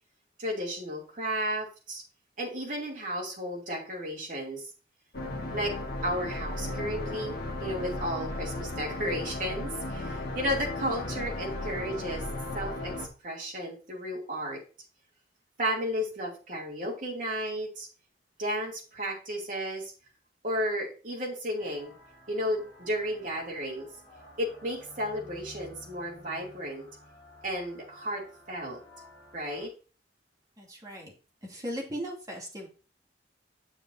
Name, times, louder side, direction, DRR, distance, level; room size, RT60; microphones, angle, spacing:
voice 1, 0.4-2.0 2.4-4.6 5.5-5.7 6.0-12.2 12.5-12.9 13.2-14.6 15.6-17.9 18.4-19.9 20.4-21.9 22.3-23.9 24.4-26.9 27.4-28.8 29.3-29.7, equal, 50° right, -2 dB, 2.7 m, -33 dB
sound 1, 5.1-13.1, left 2 dB, 55° left, 1.4 m, -35 dB
sound 2, 21.6-29.7, left 1 dB, 25° left, 2.9 m, -53 dB
voice 2, 30.6-31.1 31.4-32.7, equal, 20° right, -3 dB, 2.7 m, -37 dB
8.5 x 7.0 x 2.7 m, 0.36 s
head